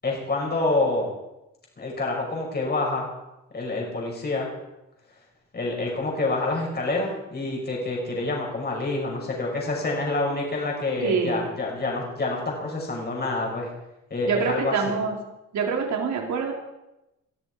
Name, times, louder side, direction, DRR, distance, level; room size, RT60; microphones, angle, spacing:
voice 1, 0.0-1.1 1.8-3.1 3.5-4.5 5.5-13.7 14.1-14.9, left 2 dB, 35° left, -2 dB, 6.6 m, -27 dB
voice 2, 11.0-11.4 14.3-15.2 15.5-16.5, right 5 dB, 70° right, 1 dB, 4.2 m, -25 dB
21.5 x 13.5 x 4.9 m, 0.93 s
cardioid pair, 90°, 30 cm